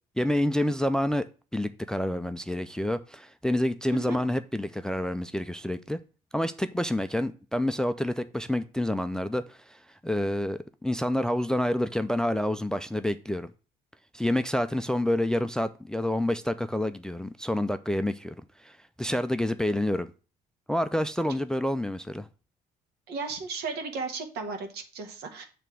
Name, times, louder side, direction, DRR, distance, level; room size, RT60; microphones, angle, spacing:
voice 1, 0.2-1.2 1.5-6.0 6.3-13.5 14.1-18.3 18.6-20.1 20.7-22.3, left 1 dB, 5° left, 11 dB, 0.4 m, -28 dB
voice 2, 23.1-25.4, right 4 dB, 75° right, 5 dB, 1.5 m, -35 dB
7.0 x 3.4 x 6.0 m, 0.36 s
cardioid pair, 110°, 17 cm